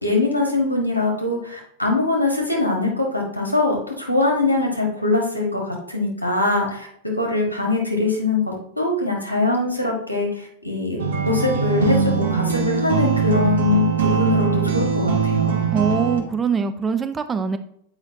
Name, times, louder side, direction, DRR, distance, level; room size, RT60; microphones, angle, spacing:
voice 1, 0.0-8.4 8.8-11.0 11.2-15.6, left 3 dB, 85° left, 0 dB, 1.5 m, -22 dB
sound 1, 11.0-16.2, right 6 dB, 65° right, 0.9 m, -21 dB
voice 2, 15.7-17.6, right 6 dB, 20° right, 9 dB, 0.4 m, -22 dB
7.9 x 4.8 x 2.7 m, 0.68 s
figure-of-eight pair, 90°, 0 cm